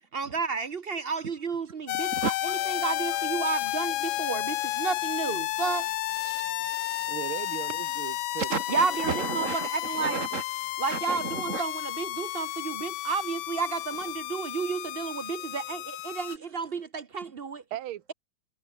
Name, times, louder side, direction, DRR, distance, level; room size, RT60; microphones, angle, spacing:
voice 1, 0.1-2.3 2.7-5.9 8.7-10.2 10.8-17.6, right 5 dB, 60° right, 0.6 m, -31 dB
sound 1, 1.9-16.4, left 17 dB, 80° left, 1.3 m, -32 dB
voice 2, 2.1-4.8 5.7-5.8 6.2-7.2 7.6-7.7 8.3-10.4 10.9-11.6 16.3-16.4, right 5 dB, 40° right, 2.4 m, -36 dB
voice 3, 7.1-8.5 17.7-18.1, right 13 dB, 80° right, 1.9 m, -37 dB
omnidirectional pair, 2.3 m